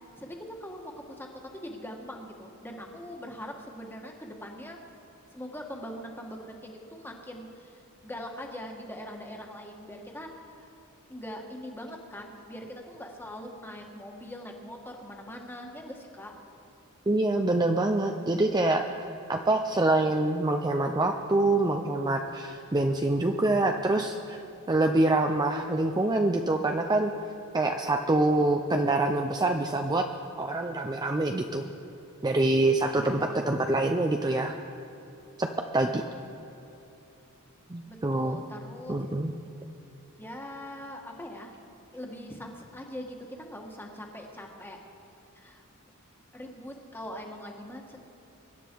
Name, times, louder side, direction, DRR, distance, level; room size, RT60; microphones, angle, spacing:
voice 1, 0.2-1.3 1.5-4.8 5.3-10.3 10.6-10.7 11.1-16.3 32.8-33.5 37.9-39.0 40.2-41.5 41.9-44.8 45.3-45.6 46.3-48.1, equal, 10° left, 1 dB, 1.6 m, -42 dB
voice 2, 17.1-18.9 19.3-24.4 24.7-27.1 27.5-30.1 30.4-31.6 32.2-34.6 35.4-35.5 35.7-36.0 37.7-38.4 38.9-39.3, right 2 dB, 20° right, 4 dB, 0.5 m, -25 dB
23.5 x 10.5 x 4.6 m, 2.9 s
head